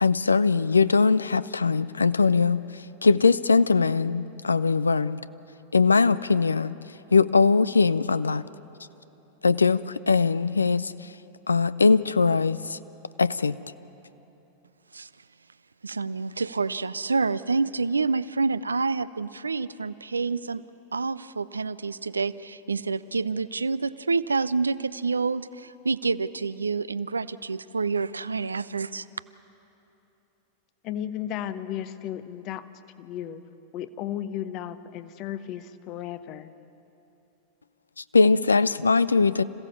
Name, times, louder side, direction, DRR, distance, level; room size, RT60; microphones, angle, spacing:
voice 1, 0.0-2.6 3.0-5.2 5.7-6.8 7.1-8.4 9.4-11.1 11.5-12.8 13.2-13.6 38.0-39.4, left 4 dB, 75° left, 17 dB, 0.4 m, -21 dB
voice 2, 15.8-20.6 20.9-29.1, right 4 dB, 75° right, 16 dB, 0.4 m, -28 dB
voice 3, 30.8-32.6 33.0-33.4 33.7-36.5, left 11 dB, 40° left, 13 dB, 0.8 m, -34 dB
26.5 x 16.0 x 7.0 m, 3.0 s
figure-of-eight pair, 90°, 0 cm